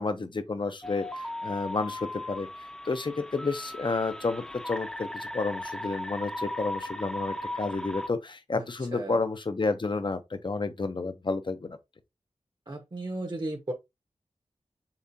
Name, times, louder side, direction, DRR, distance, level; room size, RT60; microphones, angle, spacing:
voice 1, 0.0-2.5 2.8-11.8, left 3 dB, 45° left, 0.7 m, -31 dB
sound 1, 0.8-8.1, left 1 dB, 5° left, 0.7 m, -37 dB
voice 2, 12.7-13.7, right 1 dB, 40° right, 1.0 m, -35 dB
7.0 x 2.5 x 2.8 m
wide cardioid pair, 60°, 11 cm